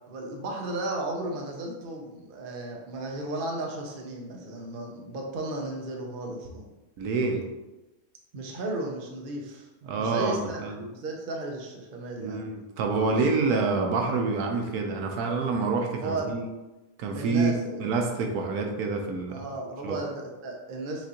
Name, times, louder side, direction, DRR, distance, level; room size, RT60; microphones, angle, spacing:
voice 1, 0.1-6.7 8.3-9.7 10.0-12.4 13.1-13.4 16.0-16.3 17.1-17.8 19.3-21.1, right 2 dB, 50° right, 0 dB, 0.7 m, -34 dB
voice 2, 7.0-7.4 9.8-10.8 12.2-16.5 17.0-17.5 17.8-19.4 19.8-20.0, right 4 dB, 85° right, 2 dB, 1.2 m, -27 dB
6.0 x 2.5 x 2.9 m, 1.1 s
omnidirectional pair, 1.6 m